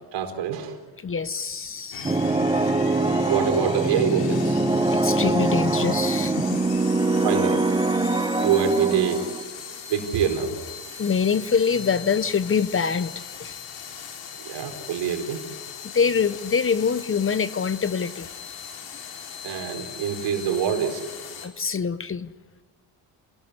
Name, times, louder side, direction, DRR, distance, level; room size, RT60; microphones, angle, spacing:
voice 1, 0.1-0.8 3.3-4.8 7.2-7.6 8.4-9.2 9.9-10.5 14.4-15.4 19.4-21.0, right 8 dB, 70° right, 6 dB, 4.5 m, -25 dB
voice 2, 1.0-2.2 4.9-6.6 11.0-13.6 15.9-18.3 21.4-22.3, left 6 dB, 30° left, 15 dB, 1.0 m, -25 dB
sound 1, 1.9-21.5, left 7 dB, 75° left, 4.7 m, -39 dB
sound 2, 2.0-9.4, right 2 dB, 10° right, 1.1 m, -23 dB
28.5 x 20.0 x 8.3 m, 1.3 s
cardioid pair, 95°, 44 cm